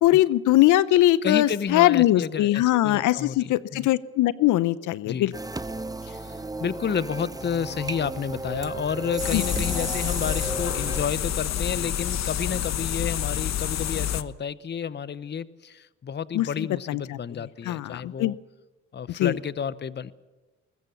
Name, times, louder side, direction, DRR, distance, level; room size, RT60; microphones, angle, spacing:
voice 1, 0.0-5.3 9.3-9.4 16.3-17.2 17.7-18.3 19.1-19.4, left 15 dB, 75° left, 19 dB, 0.8 m, -21 dB
voice 2, 1.2-3.9 5.0-5.3 6.1-18.4 18.9-20.1, left 7 dB, 35° left, 17 dB, 0.8 m, -31 dB
sound 1, 5.3-11.1, right 2 dB, 10° right, 1.1 m, -34 dB
sound 2, 7.4-11.2, right 6 dB, 55° right, 3.1 m, -45 dB
sound 3, 9.2-14.2, left 11 dB, 60° left, 1.1 m, -28 dB
21.0 x 20.5 x 6.9 m, 1.2 s
supercardioid pair, 65°, 30 cm